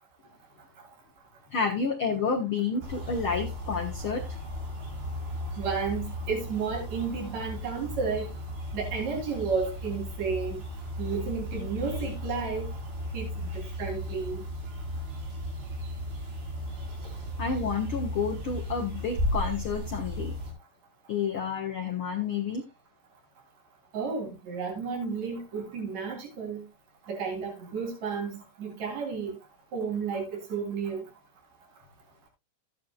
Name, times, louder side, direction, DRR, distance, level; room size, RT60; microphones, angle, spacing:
voice 1, 1.5-4.2 17.4-20.3 21.1-22.6, left 5 dB, 80° left, 1.2 m, -30 dB
sound 1, 2.8-20.5, left 1 dB, 85° right, 6.3 m, -35 dB
voice 2, 5.6-8.3 8.7-10.6 11.0-12.7 13.1-14.4 23.9-26.6 27.1-29.4 29.7-31.0, right 5 dB, 45° right, 4.6 m, -32 dB
14.0 x 9.4 x 2.4 m
omnidirectional pair, 4.4 m